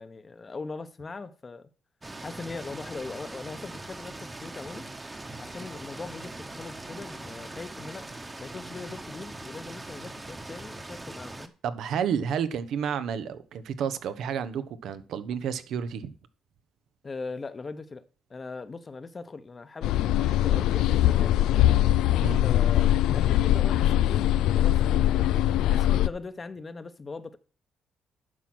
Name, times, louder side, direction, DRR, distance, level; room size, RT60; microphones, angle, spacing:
voice 1, 0.0-1.7 2.2-4.9 5.4-8.1 8.4-11.5 17.0-21.6 22.4-25.3 25.7-27.4, left 4 dB, 30° left, 1.0 m, -40 dB
sound 1, 2.0-11.5, right 2 dB, 20° right, 1.2 m, -41 dB
voice 2, 11.6-16.1 22.2-22.5, right 7 dB, 75° right, 1.0 m, -31 dB
sound 2, 19.8-26.1, left 12 dB, 90° left, 0.4 m, -22 dB
11.0 x 6.0 x 6.2 m
cardioid pair, 90°, 0 cm